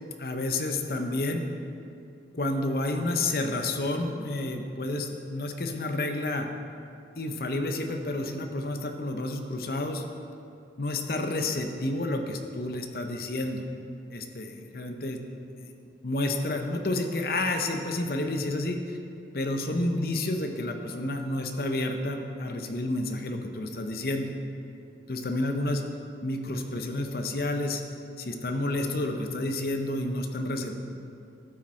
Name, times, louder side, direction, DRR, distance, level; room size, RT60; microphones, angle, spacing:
voice 1, 0.2-1.5 2.3-6.5 7.2-10.0 10.8-13.6 14.1-15.2 16.0-19.0 19.3-24.3 25.1-25.8 26.2-27.8 28.2-30.8, left 2 dB, 55° left, 5 dB, 0.7 m, -30 dB
12.5 x 6.1 x 4.4 m, 2.5 s
head